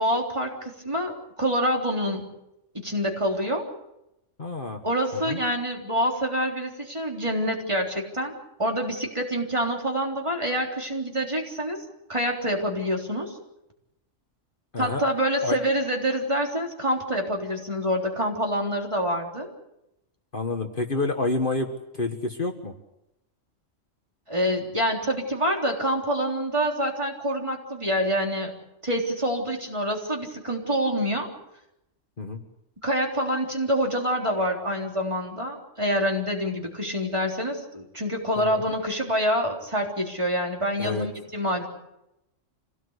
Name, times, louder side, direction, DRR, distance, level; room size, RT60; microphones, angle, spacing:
voice 1, 0.0-2.3 2.7-3.7 4.8-8.3 8.6-11.8 12.1-13.4 14.8-19.5 24.3-28.5 28.8-31.3 32.8-41.7, equal, 25° right, 0 dB, 3.8 m, -26 dB
voice 2, 4.4-4.8 5.1-5.4 14.7-15.0 15.4-15.6 20.3-21.7 21.9-22.7 32.2-32.4 38.4-38.6 40.8-41.1, left 3 dB, 45° left, 4 dB, 1.7 m, -28 dB
25.5 x 17.5 x 8.2 m, 0.88 s
omnidirectional pair, 1.3 m